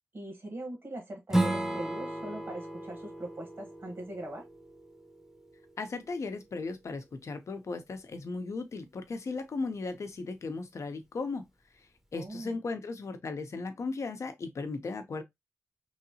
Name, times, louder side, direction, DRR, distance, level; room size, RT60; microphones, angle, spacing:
voice 1, 0.1-4.4 12.1-12.6, right 1 dB, 55° right, 1.2 m, -41 dB
Strum, 1.3-6.5, right 1 dB, 10° right, 0.7 m, -34 dB
voice 2, 5.8-11.4 11.8-15.2, left 3 dB, 70° left, 0.6 m, -36 dB
3.1 x 2.8 x 2.7 m
wide cardioid pair, 80°, 5 cm